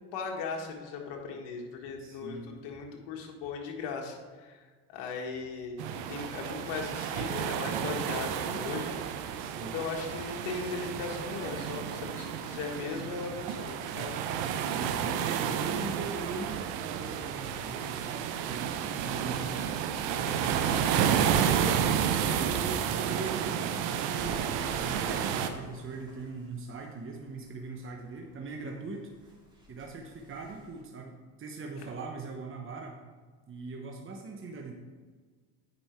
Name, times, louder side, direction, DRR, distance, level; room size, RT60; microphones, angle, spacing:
voice 1, 0.1-4.6 4.9-14.2 31.8-31.9, left 5 dB, 70° left, 1 dB, 1.8 m, -38 dB
voice 2, 2.0-2.5 9.4-9.8 14.6-19.7 20.1-21.8 22.2-29.1 29.7-33.0 33.5-34.7, right 3 dB, 30° right, 1 dB, 1.0 m, -41 dB
sound 1, 5.8-25.5, right 8 dB, 70° right, 0.9 m, -31 dB
Bird, 17.3-22.7 23.1-30.8, equal, 10° right, 2.2 m, -49 dB
8.8 x 5.5 x 4.5 m, 1.5 s
supercardioid pair, 90°, 44 cm